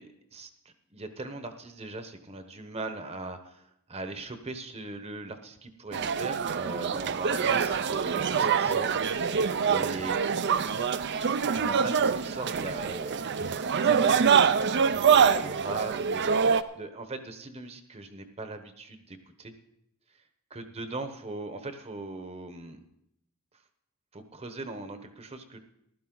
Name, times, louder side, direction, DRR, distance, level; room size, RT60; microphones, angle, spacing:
voice 1, 0.0-3.6 3.9-10.2 11.5-14.4 14.9-19.5 20.5-22.8 24.1-25.6, right 2 dB, 30° right, 8 dB, 1.0 m, -40 dB
sound 1, 5.9-16.6, right 6 dB, 50° right, 0.5 m, -25 dB
15.0 x 12.0 x 3.9 m, 0.79 s
head